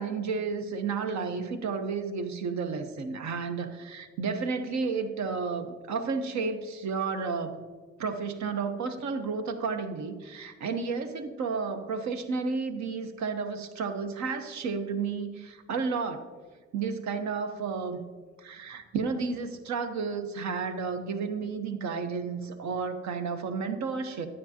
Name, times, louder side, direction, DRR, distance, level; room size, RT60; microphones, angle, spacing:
voice 1, 0.0-7.6 8.0-16.3 16.7-18.1 18.4-24.3, right 5 dB, 70° right, 7 dB, 1.0 m, -32 dB
9.7 x 9.6 x 2.9 m, 1.4 s
cardioid pair, 90°, 30 cm